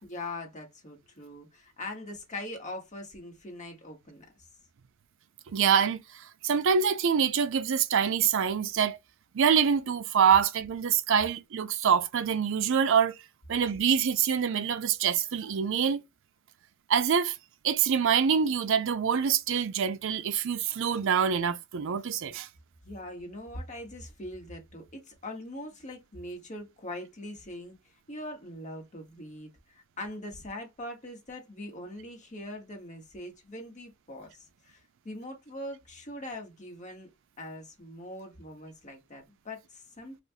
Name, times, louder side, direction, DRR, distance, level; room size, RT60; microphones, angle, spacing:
voice 1, 0.0-4.3 22.8-37.1 37.4-40.2, left 1 dB, 35° left, 1.1 m, -42 dB
voice 2, 5.5-6.0 6.4-9.0 9.3-13.2 13.5-16.0 16.9-17.4 17.6-22.5, right 7 dB, 65° right, 0.4 m, -25 dB
3.4 x 2.4 x 2.6 m
head